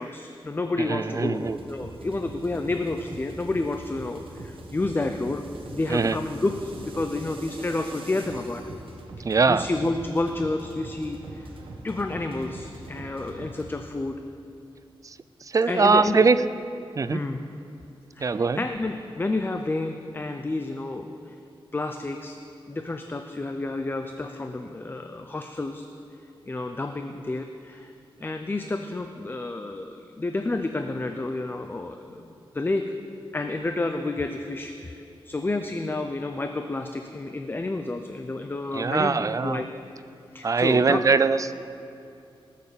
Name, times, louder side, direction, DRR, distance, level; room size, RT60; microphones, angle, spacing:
voice 1, 0.0-5.5 5.7-8.6 9.5-11.5 11.8-14.2 15.7-16.3 17.1-17.4 18.2-21.3 21.7-22.4 22.7-25.9 26.5-27.9 28.2-32.8 33.3-39.7 40.3-41.0, left 2 dB, 20° left, 6 dB, 0.5 m, -30 dB
voice 2, 0.8-1.6 5.9-6.2 9.2-9.7 15.0-16.4 17.0-17.2 18.2-18.6 38.7-39.6 40.4-41.5, right 4 dB, 35° right, 13 dB, 0.4 m, -22 dB
sound 1, 1.3-13.6, right 2 dB, 70° right, 1.4 m, -42 dB
19.0 x 6.6 x 6.8 m, 2.6 s
wide cardioid pair, 130°, 9 cm